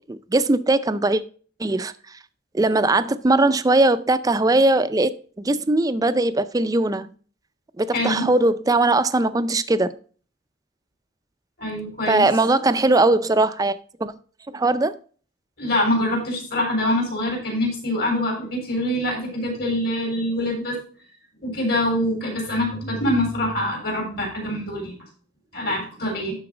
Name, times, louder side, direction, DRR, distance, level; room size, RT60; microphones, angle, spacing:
voice 1, 0.1-1.2 1.6-1.9 2.5-5.1 5.4-7.1 7.8-9.9 12.1-14.1 14.5-15.0, right 2 dB, 20° right, 0.4 m, -20 dB
voice 2, 7.9-8.3 11.6-12.2 15.6-20.8 21.4-24.9 25.5-26.3, left 1 dB, 55° left, 3.9 m, -24 dB
12.0 x 4.0 x 4.9 m
head